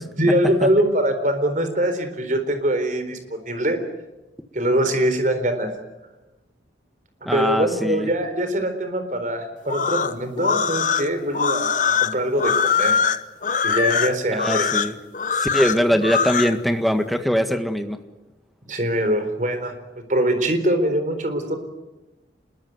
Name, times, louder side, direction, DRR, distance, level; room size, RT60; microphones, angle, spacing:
voice 1, 0.0-3.8 4.5-5.7 7.2-13.0 13.6-14.7 18.7-21.6, right 1 dB, 45° right, 8 dB, 4.0 m, -23 dB
voice 2, 7.2-8.1 14.4-14.9 15.4-18.0, equal, ahead, 7 dB, 1.6 m, -22 dB
sound 1, 9.6-16.6, left 6 dB, 45° left, 1.0 m, -22 dB
26.5 x 21.5 x 9.5 m, 1.0 s
head